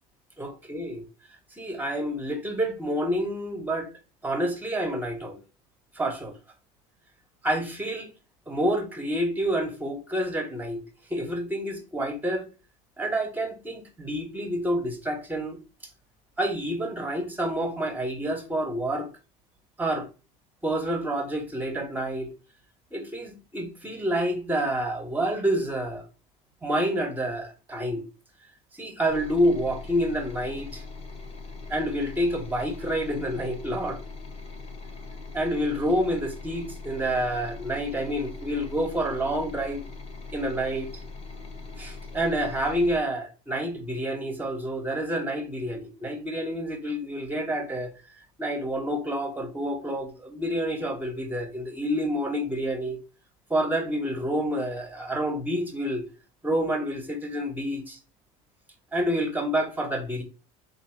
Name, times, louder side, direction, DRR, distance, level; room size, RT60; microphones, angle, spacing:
voice 1, 0.4-1.0 1.6-3.9 4.2-5.4 5.9-6.3 7.4-8.1 8.5-10.8 11.1-12.5 13.0-15.6 16.4-19.1 19.8-20.1 20.6-22.3 22.9-26.0 26.6-28.0 28.8-30.8 31.7-34.0 35.3-39.8 40.3-41.0 41.8-47.9 48.4-53.0 53.5-56.0 56.4-58.0 58.9-60.2, equal, 10° right, 1.2 m, -28 dB
sound 1, 29.1-43.0, left 3 dB, 40° left, 1.2 m, -41 dB
3.4 x 2.8 x 4.6 m
supercardioid pair, 105°, 17 cm